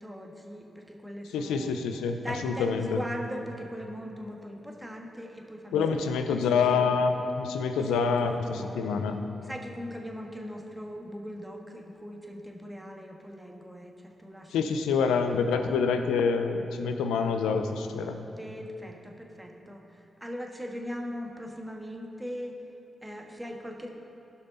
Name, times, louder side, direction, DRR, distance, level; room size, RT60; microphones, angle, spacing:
voice 1, 0.0-1.7 2.2-6.9 7.8-8.8 9.4-14.8 18.4-22.6 23.0-23.9, equal, 10° right, 1 dB, 1.5 m, -40 dB
voice 2, 1.3-3.0 5.7-8.3 8.8-9.2 14.5-18.2, left 5 dB, 90° left, 7 dB, 0.6 m, -26 dB
16.5 x 5.7 x 4.0 m, 2.9 s
supercardioid pair, 45°, 0 cm